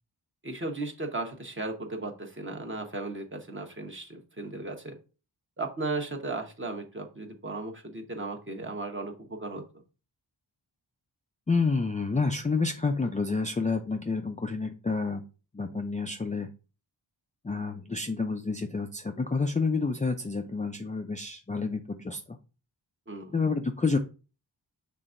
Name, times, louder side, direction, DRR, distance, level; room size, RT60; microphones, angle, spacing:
voice 1, 0.4-5.0 5.6-9.6 23.1-23.4, right 2 dB, 25° right, 3 dB, 1.0 m, -36 dB
voice 2, 11.5-15.2 15.5-16.5 17.4-22.2 23.3-24.0, left 4 dB, 20° left, 4 dB, 0.4 m, -29 dB
5.7 x 3.4 x 2.5 m, 0.34 s
cardioid pair, 50°, 45 cm